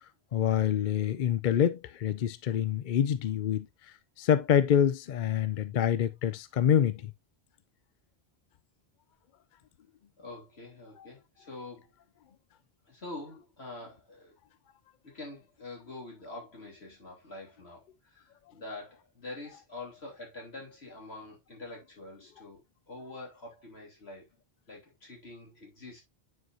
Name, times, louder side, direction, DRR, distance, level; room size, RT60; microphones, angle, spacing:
voice 1, 0.3-3.7 4.2-7.1, left 9 dB, 60° left, 0.6 m, -26 dB
voice 2, 10.2-11.9 12.9-14.3 15.0-22.6 22.9-24.3 24.7-26.0, left 2 dB, 80° left, 3.4 m, -45 dB
9.4 x 4.6 x 2.6 m
omnidirectional pair, 1.1 m